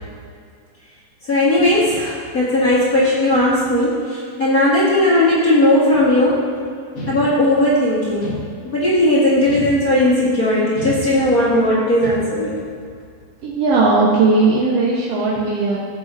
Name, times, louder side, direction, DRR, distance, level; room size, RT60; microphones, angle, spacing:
voice 1, 1.3-6.4 7.1-8.4 8.6-12.6, left 1 dB, 35° left, -8 dB, 1.6 m, -17 dB
sound 1, 7.0-7.7 8.2-9.0 9.5-10.3 10.7-11.6 12.0-12.6, left 1 dB, 80° left, 0.7 m, -32 dB
voice 2, 13.4-15.8, right 3 dB, 60° right, -6 dB, 1.9 m, -17 dB
16.0 x 6.9 x 2.7 m, 2.2 s
omnidirectional pair, 3.8 m